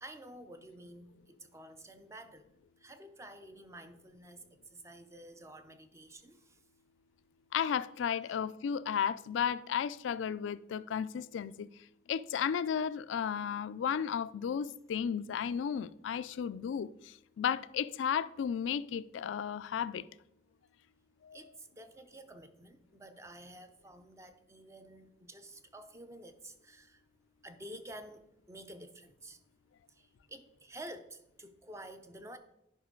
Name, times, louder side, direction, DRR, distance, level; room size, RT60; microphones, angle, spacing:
voice 1, 0.0-2.5 2.8-4.4 4.7-6.6 8.2-8.4 21.3-27.0 27.4-29.4 29.9-32.4, right 1 dB, 15° right, 0.5 m, -50 dB
voice 2, 7.5-11.7 12.1-16.9 17.4-20.0 21.2-21.4, left 7 dB, 85° left, 0.3 m, -34 dB
10.5 x 5.2 x 3.7 m
head